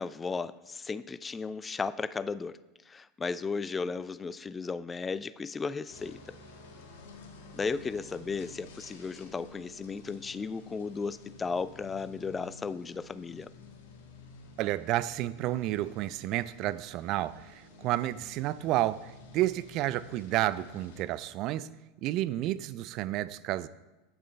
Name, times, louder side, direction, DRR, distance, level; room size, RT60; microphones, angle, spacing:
voice 1, 0.0-2.6 2.9-6.2 7.5-13.5, left 4 dB, 20° left, 17 dB, 0.4 m, -35 dB
sound 1, 5.9-21.0, left 3 dB, 65° left, 1.5 m, -52 dB
voice 2, 14.6-21.7 22.0-23.7, right 15 dB, 50° right, 16 dB, 0.4 m, -31 dB
8.9 x 6.8 x 5.2 m, 1.1 s
figure-of-eight pair, 80°, 0 cm